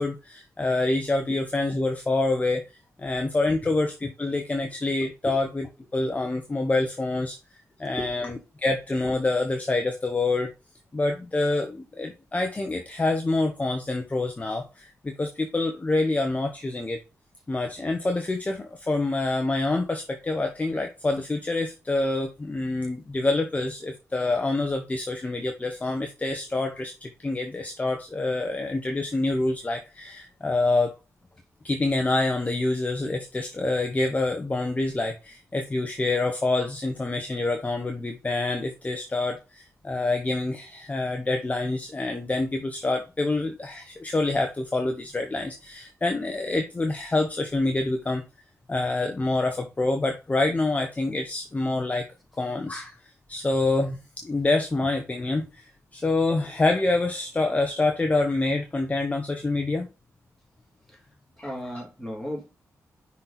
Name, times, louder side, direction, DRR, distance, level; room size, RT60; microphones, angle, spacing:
voice 1, 0.0-2.6 3.0-5.7 5.9-7.4 7.8-10.5 10.9-17.0 17.5-31.0 31.6-48.2 48.7-52.1 52.4-52.9 53.3-59.9 61.4-61.6, left 2 dB, 25° left, 1.0 m, -26 dB
voice 2, 61.4-62.5, equal, ahead, 3.1 m, -34 dB
5.8 x 4.2 x 4.1 m
cardioid pair, 80°, 6 cm